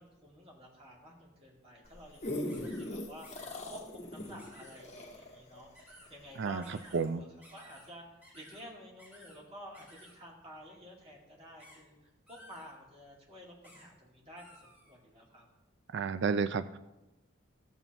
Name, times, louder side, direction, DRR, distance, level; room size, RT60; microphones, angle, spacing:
voice 1, 0.0-7.3 7.5-15.5, equal, 30° right, -2 dB, 2.2 m, -52 dB
sound 1, 1.8-6.5 7.0-7.1, left 1 dB, 35° left, 1.4 m, -40 dB
sound 2, 2.5-2.9 3.2-3.6 4.4-4.8 5.7-6.1 6.6-7.0 7.4-7.9 8.2-8.6 9.0-9.4 9.7-10.1 11.6-11.8 12.3-12.7 13.6-13.9 14.4-14.9, equal, 10° right, 3.3 m, -56 dB
voice 2, 15.9-16.8, right 5 dB, 65° right, 13 dB, 0.4 m, -31 dB
14.0 x 7.2 x 3.0 m, 1.0 s
head